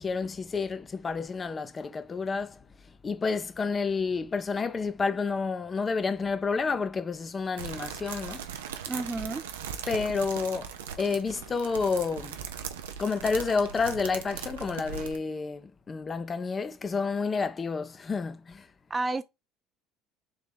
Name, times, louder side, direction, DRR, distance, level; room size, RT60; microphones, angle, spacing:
voice 1, 0.0-2.6 3.0-8.5 9.9-10.7 11.0-12.4 13.0-18.7, left 4 dB, 30° left, 0.6 m, -30 dB
sound 1, 7.6-15.2, right 8 dB, 80° right, 0.4 m, -39 dB
voice 2, 8.9-9.4 18.9-19.2, right 3 dB, 20° right, 0.3 m, -30 dB
3.6 x 2.9 x 3.5 m
hypercardioid pair, 70°, 0 cm